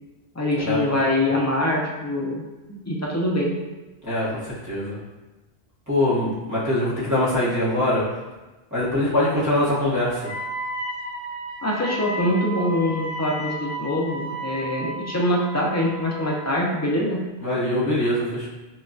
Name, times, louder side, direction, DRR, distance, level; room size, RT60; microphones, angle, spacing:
voice 1, 0.4-2.4 2.8-3.5 11.6-17.2, left 1 dB, 25° left, -3 dB, 0.3 m, -24 dB
voice 2, 4.0-5.0 5.9-8.0 8.7-10.3 17.4-18.5, left 1 dB, 20° right, -10 dB, 0.9 m, -23 dB
Wind instrument woodwind instrument, 10.2-16.7, right 1 dB, 55° right, 1.0 m, -33 dB
5.7 x 2.3 x 2.5 m, 1.2 s
omnidirectional pair, 1.1 m